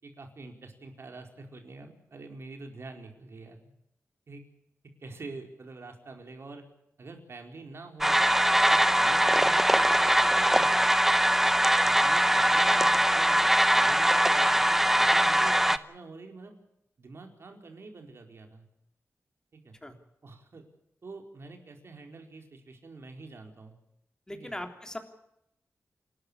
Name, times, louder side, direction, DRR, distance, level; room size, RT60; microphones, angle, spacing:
voice 1, 0.0-3.7 4.3-4.4 5.0-6.6 7.0-8.2 8.7-10.8 11.4-11.5 11.8-16.6 17.0-18.6 19.5-19.7 20.2-20.6 21.0-23.7 24.3-24.5, right 3 dB, 60° right, 3 dB, 4.6 m, -46 dB
sound 1, 8.0-15.8, right 1 dB, 5° right, 0.9 m, -22 dB
voice 2, 24.3-25.0, left 1 dB, 15° left, 5 dB, 3.4 m, -39 dB
28.5 x 12.5 x 8.6 m, 0.81 s
wide cardioid pair, 100°, 5 cm